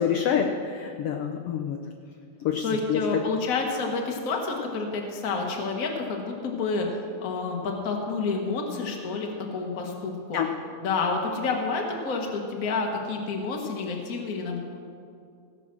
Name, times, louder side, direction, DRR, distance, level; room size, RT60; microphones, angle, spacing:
voice 1, 0.0-1.8 2.4-3.0 10.3-10.5, left 8 dB, 80° left, 4 dB, 1.4 m, -27 dB
voice 2, 2.6-6.9 7.2-10.4 10.8-14.6, left 4 dB, 40° left, 1 dB, 1.2 m, -29 dB
17.0 x 7.4 x 6.0 m, 2.4 s
omnidirectional pair, 3.5 m